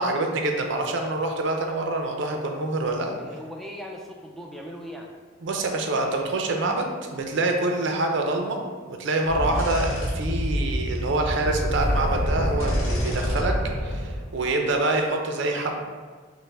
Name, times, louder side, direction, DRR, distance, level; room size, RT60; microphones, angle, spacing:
voice 1, 0.0-3.1 5.4-8.6 8.9-13.5 13.8-15.7, right 2 dB, 60° right, 3 dB, 0.5 m, -26 dB
voice 2, 3.0-5.1 9.6-9.8 14.4-14.7, equal, ahead, 0 dB, 0.3 m, -39 dB
sound 1, 9.3-14.2, equal, 20° right, 1.2 m, -26 dB
sound 2, 9.5-10.1 10.6-10.7 12.6-13.4 13.8-14.0, left 2 dB, 75° left, 0.8 m, -40 dB
5.3 x 2.1 x 3.4 m, 1.5 s
head